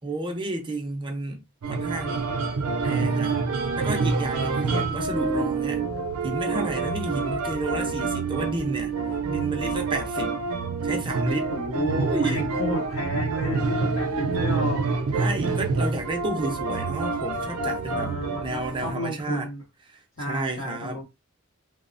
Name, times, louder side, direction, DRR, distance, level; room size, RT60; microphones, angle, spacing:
voice 1, 0.0-2.3 2.8-3.4 3.8-5.8 6.2-8.9 9.3-10.4 10.8-12.4 15.1-19.5 20.2-21.0, right 2 dB, 20° right, 0.5 m, -31 dB
sound 1, 1.6-18.9, right 4 dB, 85° right, 0.5 m, -27 dB
voice 2, 4.7-5.3 11.5-14.8 17.9-19.6 20.2-21.0, right 1 dB, 65° left, 0.7 m, -32 dB
2.9 x 2.0 x 2.5 m
head